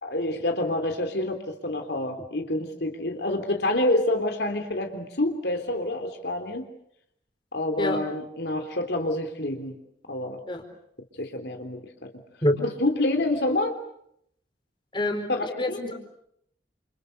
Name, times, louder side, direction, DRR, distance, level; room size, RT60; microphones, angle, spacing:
voice 1, 0.0-6.7 7.5-9.7 10.1-10.4 11.2-12.1 12.6-13.8 15.3-15.8, left 1 dB, 65° left, 5 dB, 3.4 m, -27 dB
voice 2, 14.9-15.3 15.6-16.0, left 1 dB, 25° left, 5 dB, 4.5 m, -25 dB
29.5 x 29.0 x 6.8 m, 0.73 s
head